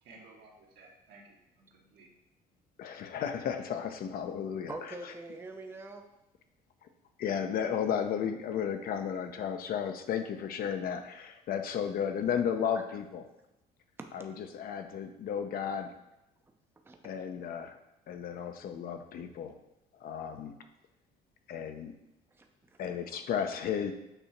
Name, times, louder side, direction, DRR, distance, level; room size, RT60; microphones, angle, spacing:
voice 1, 0.0-2.1, right 3 dB, 75° right, -2 dB, 1.7 m, -56 dB
voice 2, 2.8-4.7 7.2-13.2 14.1-15.9 17.0-17.8 18.1-19.5 20.0-20.5 21.5-21.9 22.8-23.9, left 8 dB, 60° left, 7 dB, 0.7 m, -33 dB
voice 3, 4.7-6.1 12.7-12.8 14.0-14.1 16.9-17.0 22.3-22.8, right 2 dB, 15° right, 4 dB, 0.6 m, -44 dB
6.9 x 2.8 x 5.8 m, 0.92 s
cardioid pair, 110°, 17 cm